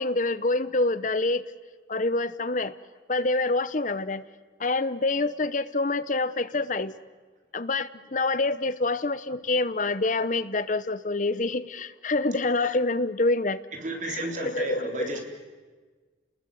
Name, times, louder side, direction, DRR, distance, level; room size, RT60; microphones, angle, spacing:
voice 1, 0.0-1.4 1.9-2.7 3.1-4.2 4.6-6.9 7.5-13.6 14.1-15.2, left 2 dB, 40° left, 14 dB, 0.9 m, -26 dB
voice 2, 13.7-15.2, right 2 dB, 40° right, 2 dB, 3.8 m, -33 dB
29.0 x 20.5 x 7.8 m, 1.4 s
head